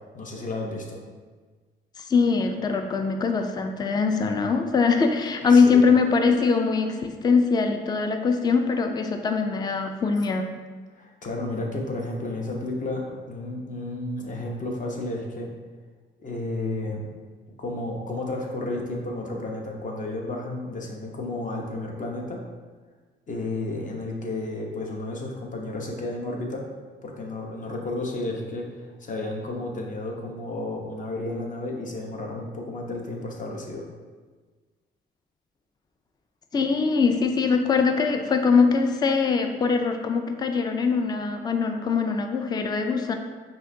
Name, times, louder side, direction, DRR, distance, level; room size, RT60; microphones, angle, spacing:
voice 1, 0.1-1.0 5.4-5.8 10.9-15.5 16.2-17.0 17.6-22.4 23.3-26.6 27.0-33.9, left 2 dB, 40° left, 0 dB, 0.9 m, -32 dB
voice 2, 2.0-10.5 36.5-43.1, left 5 dB, 20° left, 5 dB, 0.4 m, -22 dB
5.5 x 3.0 x 2.6 m, 1.4 s
cardioid pair, 90°, 20 cm